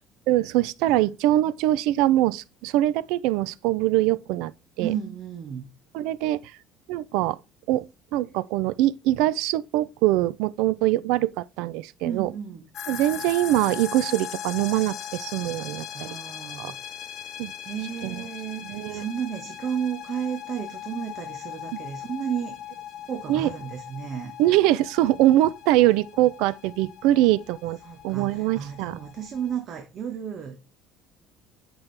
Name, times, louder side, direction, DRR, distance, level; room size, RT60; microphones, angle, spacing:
voice 1, 0.3-4.5 4.8-4.9 5.9-6.4 6.9-7.4 7.7-7.8 8.1-12.3 12.9-16.1 16.6-16.7 17.4-17.5 18.0-18.2 18.7-19.0 23.3-23.5 24.4-27.8 28.0-28.9, right 15 dB, 80° right, 0.4 m, -23 dB
voice 2, 4.8-5.7 12.0-12.6 15.9-16.9 17.6-22.6 23.1-24.3 27.8-30.6, right 8 dB, 40° right, 1.2 m, -33 dB
sound 1, 12.7-29.5, left 10 dB, 50° left, 1.1 m, -39 dB
8.8 x 6.0 x 3.3 m
cardioid pair, 145°, 0 cm